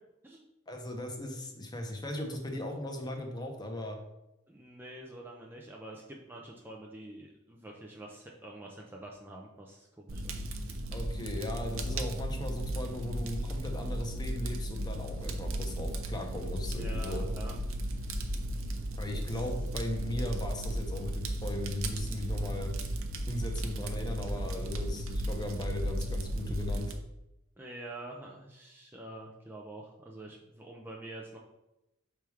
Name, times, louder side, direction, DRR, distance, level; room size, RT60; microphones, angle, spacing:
voice 1, 0.7-4.0 10.9-17.2 18.9-22.7 23.2-26.9, left 1 dB, 20° left, 3 dB, 0.8 m, -37 dB
voice 2, 4.5-10.4 16.8-18.0 19.1-19.5 27.6-31.4, right 1 dB, 10° right, -2 dB, 0.5 m, -46 dB
Fire, 10.1-26.9, right 1 dB, 75° right, 0.6 m, -35 dB
5.9 x 3.5 x 4.6 m, 0.92 s
head